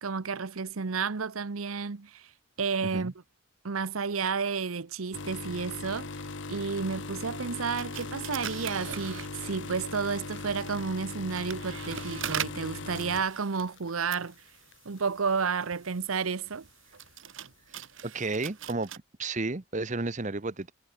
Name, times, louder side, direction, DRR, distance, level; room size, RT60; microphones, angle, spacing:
voice 1, 0.0-2.3 2.6-3.1 3.6-6.1 6.5-14.3 14.8-16.7, right 5 dB, 90° right, 0.8 m, -31 dB
sound 1, 5.1-14.3 14.7-15.0 15.9-16.0, left 3 dB, 60° left, 1.1 m, -39 dB
sound 2, 7.8-9.8 10.5-19.0, right 9 dB, 70° right, 1.3 m, -41 dB
voice 2, 18.0-18.9 19.2-20.7, right 3 dB, 35° right, 0.9 m, -32 dB
head